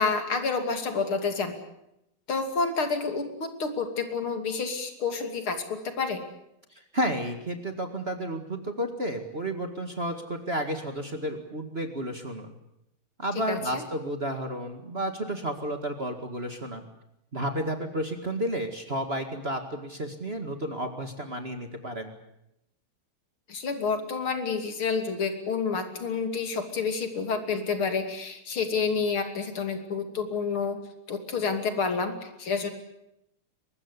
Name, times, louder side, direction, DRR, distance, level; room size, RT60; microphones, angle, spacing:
voice 1, 0.0-1.5 2.3-6.2 13.5-13.8 23.5-30.8 31.1-32.7, left 5 dB, 85° left, 6 dB, 3.7 m, -29 dB
voice 2, 6.7-12.5 13.2-16.9 17.3-22.2, right 1 dB, 30° right, 5 dB, 2.1 m, -32 dB
23.0 x 21.0 x 8.2 m, 0.82 s
omnidirectional pair, 2.3 m